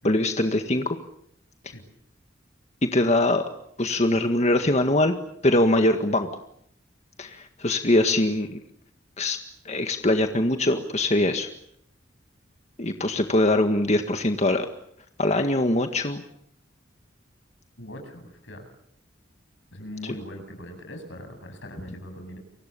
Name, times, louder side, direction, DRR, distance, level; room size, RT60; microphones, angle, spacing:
voice 1, 0.0-1.0 2.8-3.4 3.8-5.1 5.4-6.3 7.2-8.6 9.2-9.4 9.7-11.5 12.8-14.7 15.2-16.2, left 1 dB, 35° left, 6 dB, 1.8 m, -22 dB
voice 2, 17.8-18.7 19.7-22.4, left 1 dB, 80° left, 5 dB, 8.0 m, -40 dB
30.0 x 24.5 x 7.1 m, 0.71 s
head